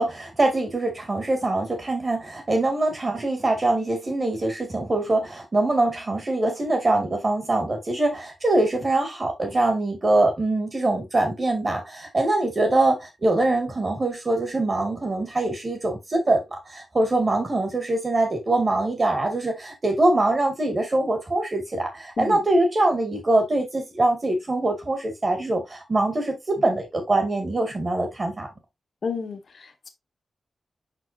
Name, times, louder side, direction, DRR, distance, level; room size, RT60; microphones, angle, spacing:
voice 1, 0.0-28.5, right 2 dB, 30° right, 2.4 m, -23 dB
voice 2, 29.0-29.9, left 5 dB, 50° left, 1.4 m, -31 dB
6.2 x 6.1 x 2.8 m
wide cardioid pair, 180°, 0 cm